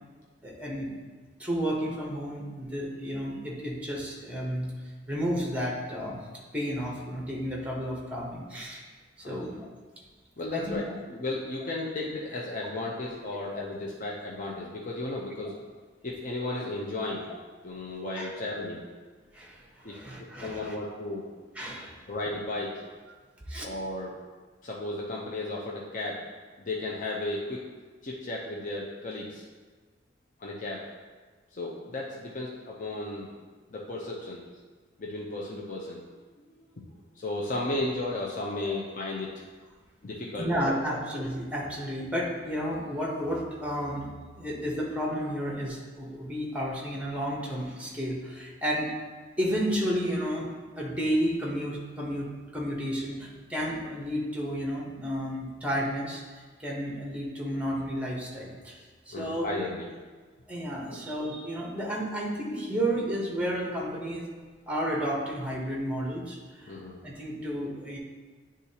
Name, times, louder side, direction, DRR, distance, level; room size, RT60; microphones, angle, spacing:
voice 1, 0.4-0.9 1.4-4.7 5.1-6.2 6.5-8.8 9.2-9.6 10.5-10.8 18.1-18.3 19.3-20.8 21.5-22.0 23.5-23.6 40.4-44.1 44.4-48.9 49.4-50.5 50.8-59.5 60.5-64.3 64.7-68.0, equal, 5° right, -2 dB, 1.0 m, -32 dB
voice 2, 10.4-15.6 16.0-17.3 17.6-18.8 19.8-20.0 20.4-21.2 22.1-22.7 23.6-24.1 24.6-26.2 26.6-27.6 28.0-29.4 30.4-30.8 31.5-33.3 33.7-34.5 35.0-36.0 36.4-36.8 37.2-39.3 40.0-40.8 59.1-59.9 66.7-67.0, left 2 dB, 45° left, -3 dB, 0.6 m, -34 dB
9.6 x 3.7 x 2.8 m, 1.4 s
head